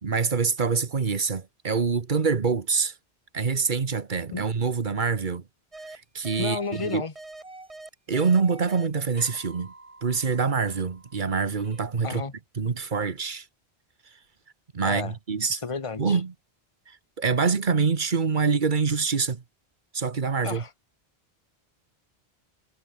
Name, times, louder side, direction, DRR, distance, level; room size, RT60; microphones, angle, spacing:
voice 1, 0.0-2.9 3.3-5.4 5.8-7.0 8.1-9.7 10.0-12.2 12.6-13.5 14.7-15.6 16.0-16.3 16.9-19.4 19.9-20.6, right 5 dB, 50° right, 1.4 m, -25 dB
sound 1, 5.7-6.0 6.2-8.9 9.2-11.8, right 2 dB, 30° right, 2.3 m, -45 dB
voice 2, 6.4-7.1 12.0-12.3 14.8-15.1 15.5-16.2 20.4-20.7, left 4 dB, 30° left, 1.4 m, -32 dB
omnidirectional pair, 1.1 m